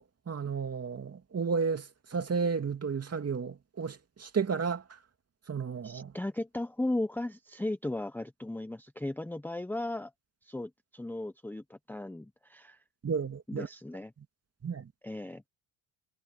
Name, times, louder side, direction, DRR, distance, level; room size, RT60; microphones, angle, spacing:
voice 1, 0.0-4.8 5.5-6.1 13.0-13.7 14.6-14.9, right 5 dB, 30° right, 2.4 m, -32 dB
voice 2, 5.8-10.1 10.4-12.8 13.5-14.1 15.0-15.4, left 1 dB, 5° left, 0.8 m, -36 dB
cardioid pair, 90°, 48 cm